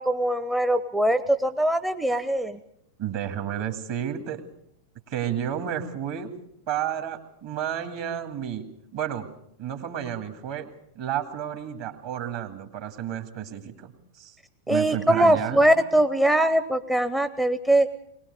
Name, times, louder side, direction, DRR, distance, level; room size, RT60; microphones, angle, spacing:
voice 1, 0.0-2.6 14.7-17.9, right 1 dB, 5° right, 9 dB, 0.7 m, -22 dB
voice 2, 3.0-4.4 5.1-6.3 6.7-9.3 9.6-10.7 10.9-14.4 14.7-15.7, right 10 dB, 50° right, 8 dB, 2.3 m, -31 dB
22.0 x 19.0 x 6.7 m, 0.73 s
figure-of-eight pair, 90°, 0 cm